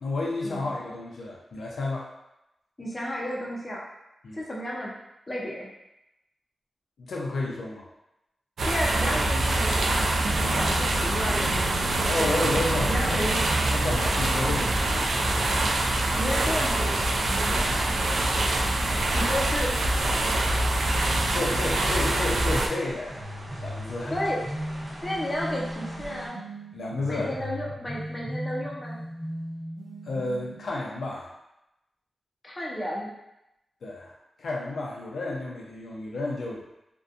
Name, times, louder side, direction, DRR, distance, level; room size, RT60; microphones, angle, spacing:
voice 1, 0.0-2.1 4.2-4.4 7.0-7.8 12.1-13.2 13.7-15.0 21.3-23.2 23.6-24.2 26.7-27.3 30.0-31.3 33.8-34.1 34.4-36.6, left 2 dB, 80° left, -3 dB, 0.5 m, -31 dB
voice 2, 2.8-3.8 4.3-4.9 5.3-5.7 8.6-10.1 10.4-12.4 12.9-13.4 16.1-17.7 19.1-19.7 24.1-24.4 25.0-26.4 27.1-29.0 32.4-33.1, equal, 20° left, -4 dB, 0.5 m, -32 dB
sound 1, 8.6-22.7, right 2 dB, 85° right, 0.3 m, -25 dB
sound 2, 13.5-26.3, equal, 40° right, 0.6 m, -43 dB
sound 3, 23.1-30.7, equal, 15° right, 0.9 m, -37 dB
2.6 x 2.2 x 2.4 m, 0.89 s
wide cardioid pair, 155°, 0 cm